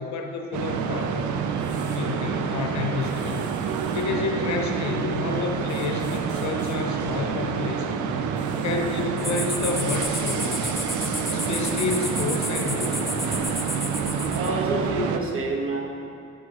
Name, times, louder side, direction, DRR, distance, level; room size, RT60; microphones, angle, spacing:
voice 1, 0.0-1.4 1.9-3.5 3.9-8.2 8.6-10.8 11.3-13.3, left 4 dB, 65° left, 3 dB, 0.8 m, -30 dB
sound 1, 0.5-15.2, right 6 dB, 75° right, 0.5 m, -28 dB
sound 2, 1.6-2.0 3.0-4.1 5.7-6.8 8.4-9.1, right 1 dB, 25° right, 1.0 m, -49 dB
sound 3, 9.2-14.5, left 1 dB, ahead, 0.6 m, -31 dB
voice 2, 14.3-15.8, right 2 dB, 45° right, -1 dB, 1.2 m, -27 dB
8.7 x 4.7 x 2.9 m, 2.6 s
cardioid pair, 90°, 30 cm